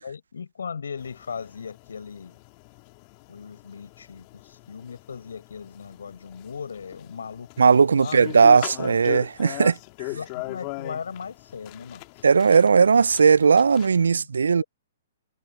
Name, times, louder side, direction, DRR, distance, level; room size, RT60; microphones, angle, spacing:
voice 1, 0.0-2.4 3.3-8.2 10.1-12.0 14.6-14.7, left 6 dB, 75° left, 7.1 m, -38 dB
sound 1, 1.0-14.1, left 30 dB, 40° left, 2.1 m, -40 dB
voice 2, 7.6-9.8 12.2-14.6, right 5 dB, 80° right, 0.4 m, -17 dB
hypercardioid pair, 125°, 0 cm